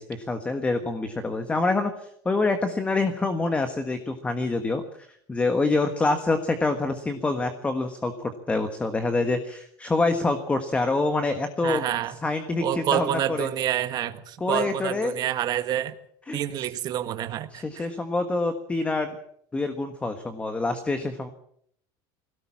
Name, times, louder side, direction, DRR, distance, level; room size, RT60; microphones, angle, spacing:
voice 1, 0.0-11.8 12.2-13.5 14.4-15.1 16.3-16.7 17.5-19.2 19.5-21.3, left 3 dB, 10° left, 8 dB, 1.4 m, -26 dB
voice 2, 11.6-12.1 12.6-15.9 16.3-17.9, right 11 dB, 35° right, 9 dB, 1.6 m, -28 dB
21.5 x 17.5 x 7.4 m, 0.65 s
cardioid pair, 160°, 11 cm